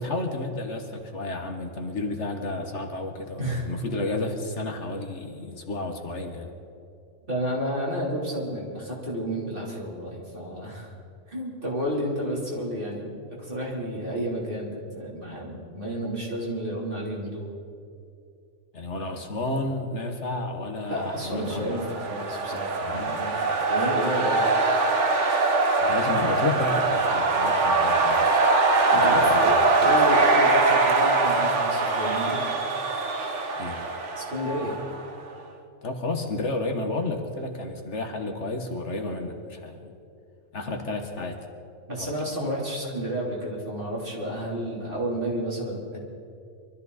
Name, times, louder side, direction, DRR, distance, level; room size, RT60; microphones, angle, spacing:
voice 1, 0.0-6.5 18.7-21.8 22.8-23.1 25.8-28.3 28.9-29.9 33.6-33.8 35.8-39.9 40.5-41.5 42.0-42.1, left 2 dB, 60° left, 4 dB, 1.6 m, -31 dB
voice 2, 7.3-10.9 11.3-17.5 20.9-23.3 23.7-24.4 28.9-32.4 34.2-34.7 41.9-46.0, equal, 40° right, -5 dB, 3.9 m, -31 dB
sound 1, 21.3-35.1, right 3 dB, 65° right, 1.5 m, -22 dB
23.5 x 13.5 x 4.2 m, 2.6 s
omnidirectional pair, 1.3 m